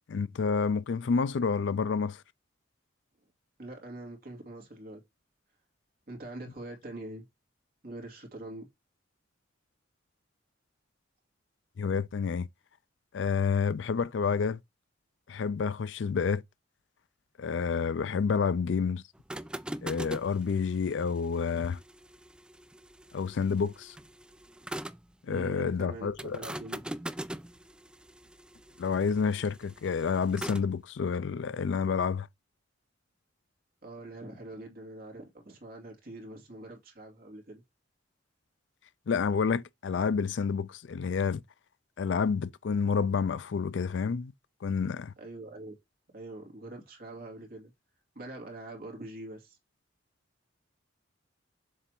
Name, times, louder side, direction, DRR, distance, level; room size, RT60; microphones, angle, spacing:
voice 1, 0.1-2.2 11.8-12.5 13.1-14.6 15.3-16.4 17.4-19.0 19.8-21.8 23.1-24.0 25.3-26.4 28.8-32.3 39.1-41.4 42.0-44.3 44.6-45.1, left 5 dB, 65° left, 0.4 m, -29 dB
voice 2, 3.6-5.0 6.1-7.3 7.8-8.7 25.3-26.8 33.8-37.6 45.2-45.7 46.1-47.7 48.1-49.6, right 1 dB, 50° right, 2.6 m, -44 dB
sound 1, 19.1-25.1 26.2-30.7, right 1 dB, 5° right, 0.3 m, -42 dB
7.0 x 3.4 x 4.5 m
head